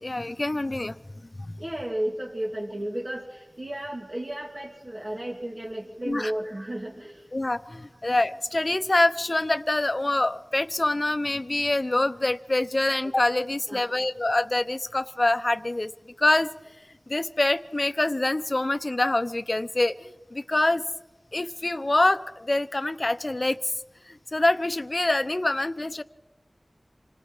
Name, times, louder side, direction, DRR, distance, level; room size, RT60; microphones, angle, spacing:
voice 1, 0.0-1.0 1.4-1.6 6.1-6.3 7.3-15.9 16.2-16.5 17.1-20.8 21.3-23.6 24.1-26.0, left 2 dB, 50° left, 13 dB, 0.8 m, -25 dB
voice 2, 1.6-7.3 7.9-8.0 13.7-13.9, right 1 dB, 50° right, -3 dB, 2.6 m, -33 dB
27.0 x 18.0 x 5.5 m, 1.1 s
wide cardioid pair, 40°, 0 cm